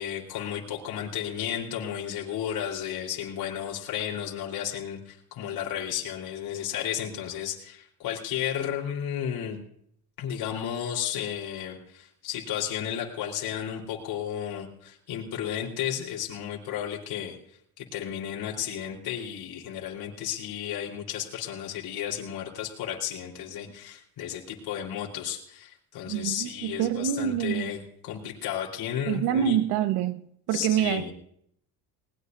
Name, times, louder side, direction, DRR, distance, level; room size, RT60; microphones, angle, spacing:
voice 1, 0.0-9.6 10.2-17.4 17.8-29.6 30.5-31.1, left 10 dB, 70° left, 4.1 m, -33 dB
voice 2, 26.1-27.7 29.1-30.2 30.5-31.1, right 10 dB, 85° right, 1.4 m, -26 dB
20.5 x 20.5 x 2.7 m
cardioid pair, 95°, 38 cm